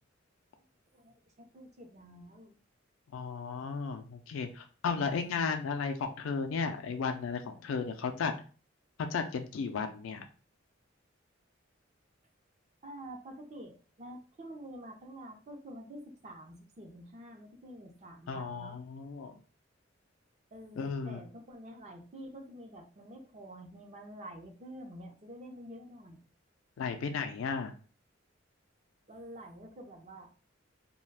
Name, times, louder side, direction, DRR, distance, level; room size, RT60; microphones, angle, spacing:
voice 1, 0.9-2.5 5.0-5.5 12.8-18.8 20.5-26.2 29.1-30.3, right 1 dB, 35° right, 2 dB, 0.5 m, -48 dB
voice 2, 3.1-8.3 9.1-10.2 18.3-19.4 20.8-21.2 26.8-27.7, left 5 dB, 90° left, 6 dB, 0.4 m, -34 dB
2.3 x 2.2 x 3.2 m, 0.38 s
head